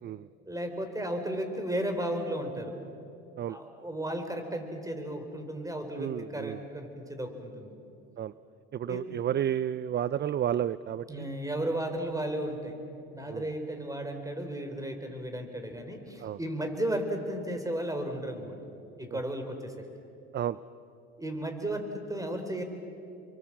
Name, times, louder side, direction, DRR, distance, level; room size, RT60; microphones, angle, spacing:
voice 1, 0.5-2.7 3.5-7.7 8.9-9.2 11.1-12.8 13.1-18.6 19.0-19.7 21.2-22.6, right 1 dB, 10° right, 6 dB, 4.3 m, -34 dB
voice 2, 5.9-6.6 8.2-8.3 8.7-11.3 13.3-13.5 16.2-16.4 19.1-19.2 20.3-20.6, right 10 dB, 35° right, 17 dB, 0.5 m, -31 dB
29.5 x 23.5 x 7.5 m, 2.7 s
supercardioid pair, 80°, 32 cm